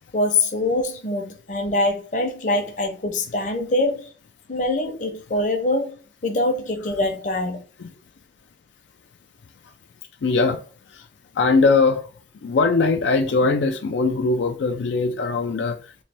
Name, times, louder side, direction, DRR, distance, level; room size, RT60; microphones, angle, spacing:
voice 1, 0.1-4.1 4.5-7.6, left 2 dB, 45° left, 0.7 m, -24 dB
voice 2, 10.2-11.1 11.3-12.1 12.4-15.9, left 3 dB, 80° left, 0.4 m, -21 dB
3.2 x 2.6 x 4.2 m
head